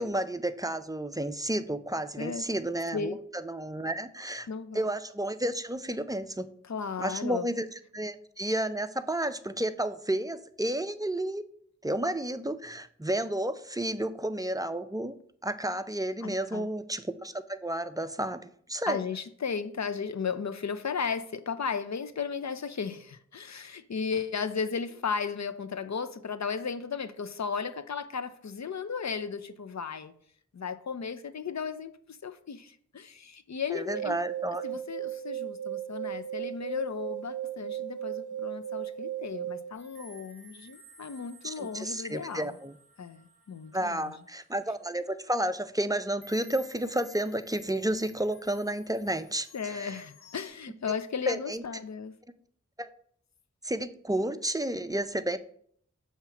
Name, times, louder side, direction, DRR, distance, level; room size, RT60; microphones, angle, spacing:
voice 1, 0.0-4.5 4.7-6.5 7.0-7.7 7.9-11.4 11.8-15.1 15.4-19.0 33.7-34.6 41.4-42.7 43.7-49.9 51.3-51.6 53.6-55.4, right 1 dB, 15° right, 0.4 m, -31 dB
voice 2, 4.5-4.9 6.6-7.5 16.2-16.7 18.9-30.1 30.5-34.2 34.6-42.5 43.0-44.2 49.5-52.1, left 6 dB, 65° left, 0.5 m, -35 dB
sound 1, 33.7-39.7, right 11 dB, 80° right, 0.6 m, -36 dB
sound 2, 39.7-44.8 45.3-45.5 46.2-50.5, left 1 dB, 50° left, 1.7 m, -55 dB
7.0 x 2.9 x 5.8 m
wide cardioid pair, 45°, 29 cm